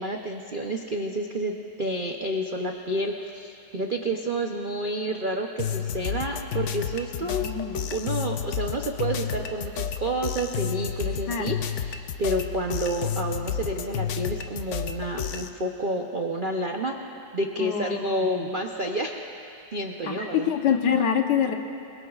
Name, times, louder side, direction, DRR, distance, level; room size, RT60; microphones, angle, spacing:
voice 1, 0.0-7.5 7.9-17.0 17.3-19.2 19.7-20.5, right 1 dB, 55° right, 2 dB, 0.5 m, -29 dB
sound 1, 5.6-15.5, left 8 dB, 90° left, 0.6 m, -31 dB
voice 2, 7.2-7.8 11.3-11.5 17.6-18.5 20.1-21.6, left 8 dB, 70° left, 4 dB, 1.6 m, -26 dB
27.0 x 21.5 x 2.4 m, 2.6 s
omnidirectional pair, 2.0 m